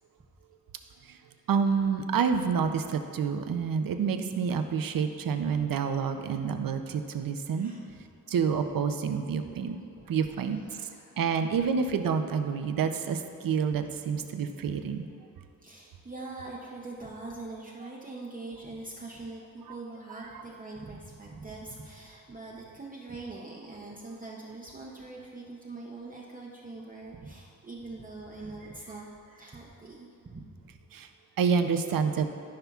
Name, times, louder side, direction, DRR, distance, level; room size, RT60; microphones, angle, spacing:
voice 1, 1.5-7.7 8.3-9.8 10.1-10.6 11.2-15.1 19.7-19.8 20.3-20.4 30.9-31.1 31.4-32.3, right 6 dB, 85° right, 7 dB, 0.6 m, -28 dB
voice 2, 7.5-7.8 10.0-11.4 15.6-30.8, right 3 dB, 25° right, -4 dB, 0.6 m, -43 dB
14.0 x 5.7 x 2.4 m, 2.6 s
wide cardioid pair, 150°, 33 cm